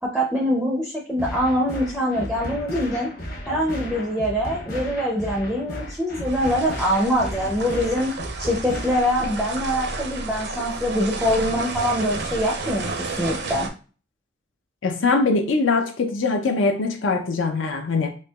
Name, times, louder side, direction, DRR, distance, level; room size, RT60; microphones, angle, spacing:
voice 1, 0.0-3.1 3.5-8.1 8.4-13.7, equal, ahead, 0.4 m, -24 dB
sound 1, 1.2-9.2, equal, 45° left, 0.9 m, -34 dB
sound 2, 6.3-13.7, right 3 dB, 55° right, 0.5 m, -32 dB
voice 2, 14.8-18.1, left 3 dB, 85° left, 0.5 m, -22 dB
4.4 x 2.9 x 2.3 m
head